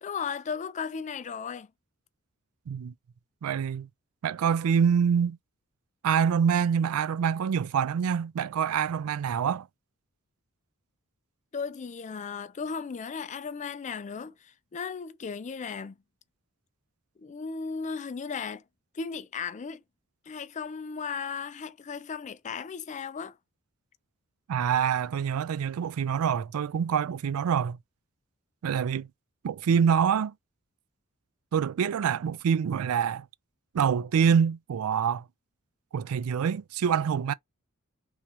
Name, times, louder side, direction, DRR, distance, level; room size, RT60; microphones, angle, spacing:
voice 1, 0.0-1.7 11.5-16.0 17.2-18.6 18.9-19.8 20.3-23.4, left 5 dB, 35° left, 0.4 m, -36 dB
voice 2, 3.4-3.9 4.2-5.4 6.0-9.7 24.5-27.8 28.6-29.1 29.4-30.3 31.5-33.3 33.7-35.2 35.9-37.3, right 7 dB, 90° right, 0.4 m, -26 dB
3.6 x 2.7 x 4.4 m
head